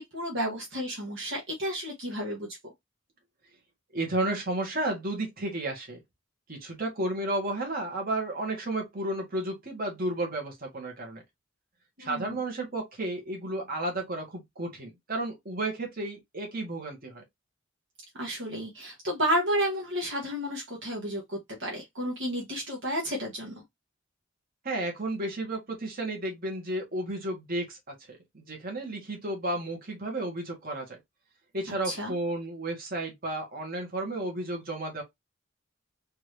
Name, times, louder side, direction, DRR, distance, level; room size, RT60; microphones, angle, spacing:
voice 1, 0.0-2.5 12.0-12.4 18.2-23.5 31.8-32.1, equal, 60° right, 1.6 m, -31 dB
voice 2, 3.9-6.0 6.5-11.2 12.0-17.2 24.6-31.0 31.5-35.0, right 1 dB, 45° right, 1.9 m, -32 dB
4.4 x 2.9 x 3.2 m
head